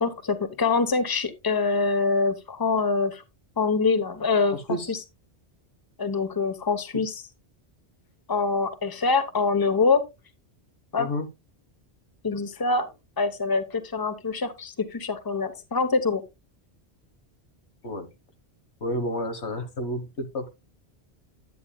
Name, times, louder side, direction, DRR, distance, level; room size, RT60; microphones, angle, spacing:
voice 1, 0.0-3.2 3.6-4.6 4.9-5.0 6.0-7.2 8.3-10.0 10.9-11.1 12.2-12.9 13.2-16.2, left 4 dB, 20° left, 0.9 m, -24 dB
voice 2, 4.5-4.9 6.9-7.0 11.0-11.3 17.8-18.1 18.8-20.5, left 1 dB, 90° left, 1.7 m, -30 dB
10.5 x 8.7 x 2.2 m
omnidirectional pair, 1.1 m